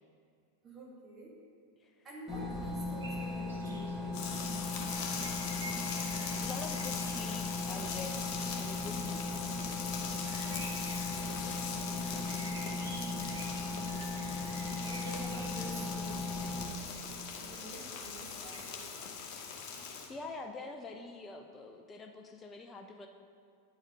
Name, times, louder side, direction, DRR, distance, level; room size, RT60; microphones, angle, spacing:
voice 1, 0.6-1.3 2.0-4.4 10.3-10.8 14.9-16.3 17.4-19.0, right 1 dB, 20° right, -4 dB, 2.0 m, -49 dB
sound 1, 2.3-16.6, left 3 dB, ahead, 1.5 m, -38 dB
sound 2, 3.0-18.6, right 2 dB, 70° right, 0.9 m, -51 dB
sound 3, 4.1-20.1, left 6 dB, 40° left, 1.0 m, -41 dB
voice 2, 6.4-9.5 20.1-23.1, left 3 dB, 20° left, 4 dB, 0.5 m, -46 dB
8.9 x 4.8 x 5.4 m, 2.3 s
figure-of-eight pair, 90°, 0 cm